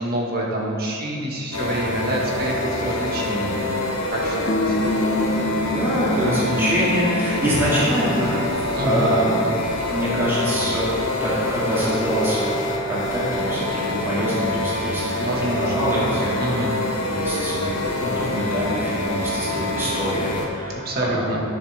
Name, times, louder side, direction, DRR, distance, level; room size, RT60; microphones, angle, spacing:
voice 1, 0.0-3.6 4.1-4.8 8.7-9.3 15.2-16.1 16.4-16.8 20.7-21.4, right 1 dB, 45° right, -2 dB, 1.4 m, -27 dB
sound 1, 1.5-20.5, left 1 dB, 80° left, 1.2 m, -26 dB
sound 2, 4.5-7.6, left 1 dB, 40° left, 0.5 m, -26 dB
voice 2, 5.5-9.4 9.9-16.7 17.0-21.4, equal, 10° right, -10 dB, 2.0 m, -25 dB
10.5 x 6.8 x 3.4 m, 2.4 s
head